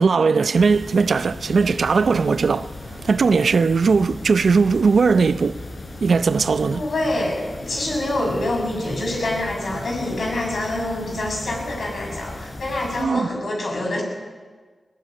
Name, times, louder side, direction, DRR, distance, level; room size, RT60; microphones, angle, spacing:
voice 1, 0.0-5.7 6.0-6.8 13.0-13.3, right 5 dB, 75° right, 0.6 m, -19 dB
sound 1, 0.5-13.0, left 2 dB, 60° left, 4.6 m, -37 dB
voice 2, 6.7-14.0, left 1 dB, 80° left, 6.8 m, -26 dB
21.0 x 17.5 x 8.6 m
cardioid pair, 50°, 0 cm